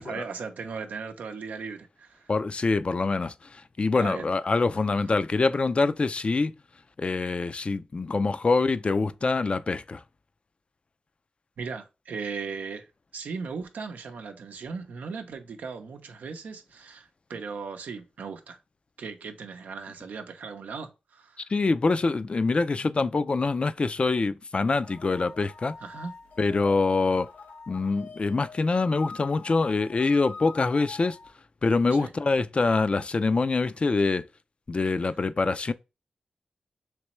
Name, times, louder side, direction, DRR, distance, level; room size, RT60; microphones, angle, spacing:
voice 1, 0.0-2.3 3.9-4.3 11.6-12.9 13.1-18.6 19.0-21.5 25.8-26.1 31.9-32.1, right 5 dB, 90° right, 0.6 m, -37 dB
voice 2, 2.3-6.5 7.0-10.0 21.5-25.8 26.4-27.3 27.7-31.2 31.6-34.2 34.7-35.7, left 3 dB, 45° left, 0.3 m, -25 dB
sound 1, 24.8-31.3, left 4 dB, 85° left, 1.6 m, -45 dB
3.3 x 3.0 x 3.0 m
cardioid pair, 55°, 3 cm